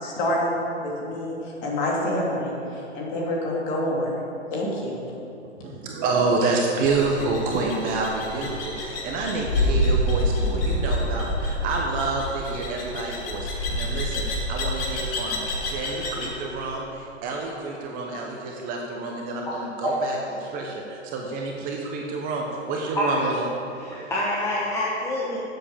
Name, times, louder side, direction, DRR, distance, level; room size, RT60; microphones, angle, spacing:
voice 1, 0.0-4.2 4.5-5.0, left 1 dB, 35° left, -3 dB, 2.9 m, -27 dB
voice 2, 5.6-23.5, right 3 dB, 25° right, 0 dB, 0.9 m, -28 dB
sound 1, 6.8-16.3, equal, 50° left, 2.5 m, -27 dB
voice 3, 23.8-25.4, left 1 dB, 5° left, -6 dB, 1.1 m, -26 dB
12.5 x 7.8 x 5.2 m, 2.9 s
hypercardioid pair, 135°, 36 cm